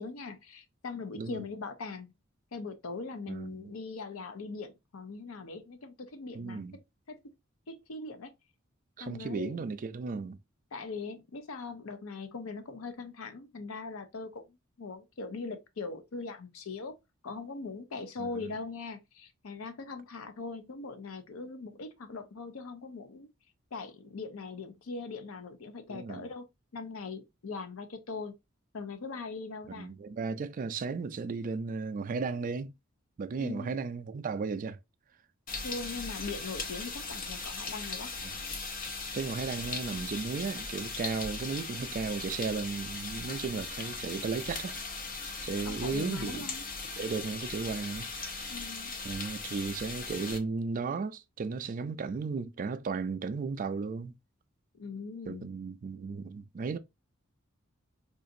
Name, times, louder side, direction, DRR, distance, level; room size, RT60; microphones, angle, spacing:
voice 1, 0.0-2.1 2.5-6.6 7.1-7.2 7.7-8.3 9.0-9.7 10.7-16.9 17.2-23.3 23.7-26.5 26.7-28.3 28.7-29.9 33.4-33.8 35.6-38.2 45.6-46.6 48.5-48.9 54.7-55.5, left 4 dB, 90° left, 0.6 m, -41 dB
voice 2, 3.3-3.7 6.3-6.7 9.0-10.4 18.2-18.5 25.9-26.3 29.8-32.7 33.2-34.8 39.1-44.7 45.4-46.4 47.0-48.5 49.0-54.1 55.3-56.8, right 4 dB, 40° right, 0.3 m, -35 dB
sound 1, 35.5-50.4, left 4 dB, 40° left, 0.7 m, -39 dB
3.8 x 2.4 x 2.6 m
head